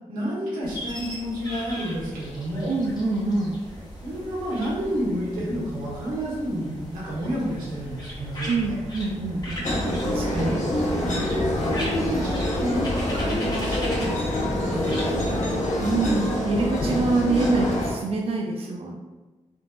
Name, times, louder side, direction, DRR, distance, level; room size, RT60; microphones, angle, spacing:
voice 1, 0.1-2.7 4.0-8.7 10.4-15.5, equal, 90° right, -7 dB, 1.2 m, -30 dB
sound 1, 0.6-15.4, equal, 30° left, 1.0 m, -38 dB
voice 2, 2.7-3.5 8.5-9.7 10.0-10.6 11.0-11.1 15.7-19.0, right 3 dB, 45° right, 0 dB, 0.4 m, -25 dB
sound 2, 9.6-17.9, left 1 dB, 65° left, 0.8 m, -26 dB
3.6 x 2.4 x 2.3 m, 1.2 s
cardioid pair, 55°, 14 cm